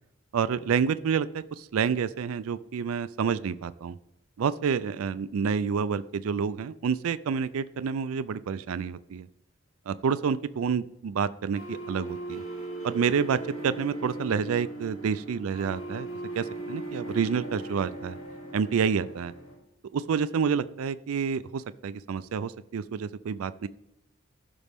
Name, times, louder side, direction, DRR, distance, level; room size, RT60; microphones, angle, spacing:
voice 1, 0.3-4.0 4.4-9.3 9.9-12.4 12.8-16.1 16.3-18.2 18.5-19.3 19.9-23.7, right 6 dB, 85° right, 15 dB, 0.4 m, -28 dB
sound 1, 11.5-19.5, right 2 dB, 90° left, 3.1 m, -38 dB
15.0 x 6.2 x 3.5 m, 0.88 s
head